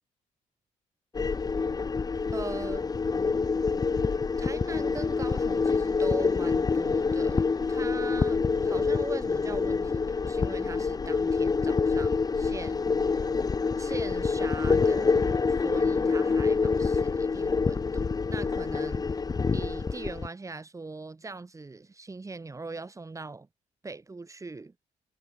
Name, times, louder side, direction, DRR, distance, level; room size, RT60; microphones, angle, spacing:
sound 1, 1.2-20.3, left 4 dB, 30° left, 1.0 m, -26 dB
voice 1, 2.3-2.9 4.4-12.8 13.1-13.3 13.8-19.2 19.5-23.5 23.8-24.7, right 3 dB, 25° right, 7.3 m, -41 dB
cardioid pair, 100°, 13 cm